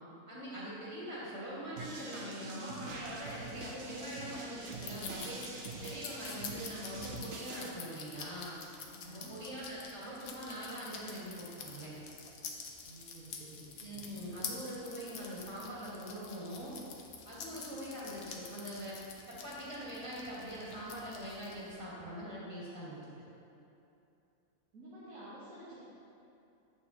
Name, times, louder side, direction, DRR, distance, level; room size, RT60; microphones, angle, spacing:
voice 1, 0.3-5.4 5.8-8.5 9.1-12.0 13.8-16.8 17.3-19.0 19.3-23.0, equal, 20° right, -8 dB, 2.0 m, -43 dB
sound 1, 1.8-7.7, right 3 dB, 50° right, 1.0 m, -45 dB
sound 2, 3.2-21.8, left 5 dB, 85° left, 1.2 m, -48 dB
voice 2, 8.9-9.3 12.8-14.0 24.7-25.7, right 1 dB, 75° right, -11 dB, 1.9 m, -51 dB
8.9 x 6.9 x 3.0 m, 2.7 s
omnidirectional pair, 1.5 m